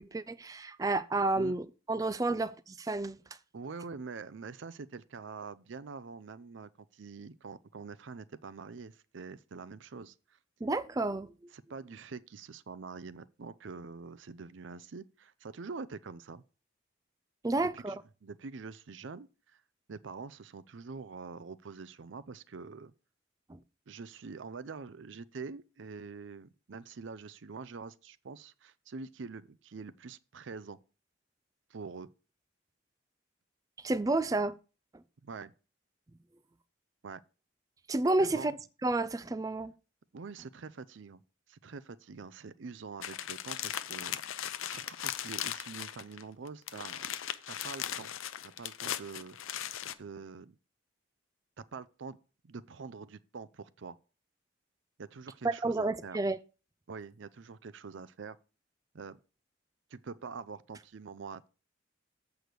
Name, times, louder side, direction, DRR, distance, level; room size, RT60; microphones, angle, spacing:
voice 1, 0.0-2.5 2.8-3.2 10.6-11.3 17.4-18.0 23.5-23.6 33.8-34.6 37.9-38.5 38.8-39.7 55.4-56.4, right 2 dB, 15° right, 0.3 m, -30 dB
voice 2, 3.5-10.4 11.5-16.4 17.6-19.6 19.9-22.9 23.9-30.8 31.7-32.1 35.2-35.5 37.0-37.2 38.2-38.5 40.1-41.2 41.5-47.1 47.5-48.1 48.4-50.6 51.6-52.2 52.4-54.0 55.0-56.2 56.9-58.4 58.9-59.2 59.9-61.5, right 4 dB, 70° right, 0.5 m, -45 dB
sound 1, 43.0-46.2 46.5-49.9, left 10 dB, 85° left, 0.6 m, -38 dB
7.8 x 4.8 x 6.7 m
head